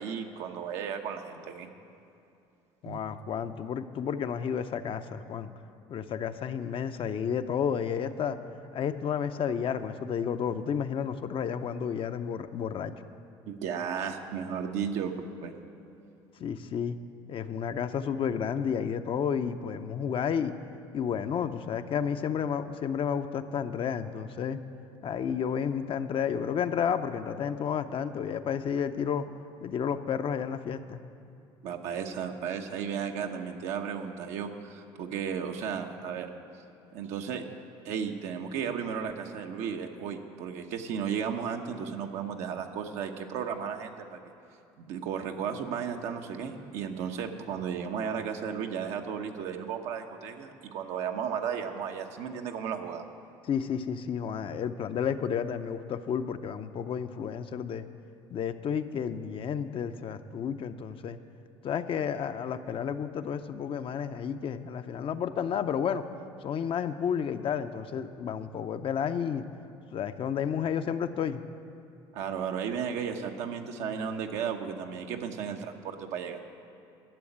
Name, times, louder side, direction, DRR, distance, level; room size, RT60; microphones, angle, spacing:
voice 1, 0.0-1.7 2.9-3.0 13.5-15.1 15.4-15.5 31.6-36.3 36.9-37.4 37.8-44.2 44.8-53.0 72.1-76.4, right 7 dB, 75° right, 4 dB, 1.0 m, -34 dB
voice 2, 2.8-5.5 5.9-8.4 8.7-12.9 16.4-17.0 17.3-20.5 20.9-24.6 25.0-29.3 29.6-31.0 53.5-57.9 58.3-61.2 61.6-66.1 66.4-69.4 69.9-71.4, left 7 dB, 50° left, 9 dB, 0.6 m, -31 dB
12.0 x 7.1 x 8.6 m, 2.6 s
supercardioid pair, 80°, 12 cm